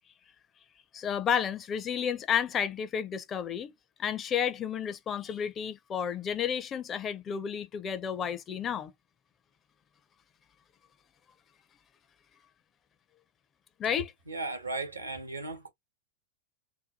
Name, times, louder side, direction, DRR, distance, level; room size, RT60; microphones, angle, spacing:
voice 1, 0.9-3.7 4.0-8.9 13.8-14.1, left 8 dB, 25° left, 0.5 m, -31 dB
voice 2, 14.3-15.7, right 3 dB, 80° right, 0.9 m, -36 dB
2.7 x 2.2 x 4.0 m
figure-of-eight pair, 90°, 0 cm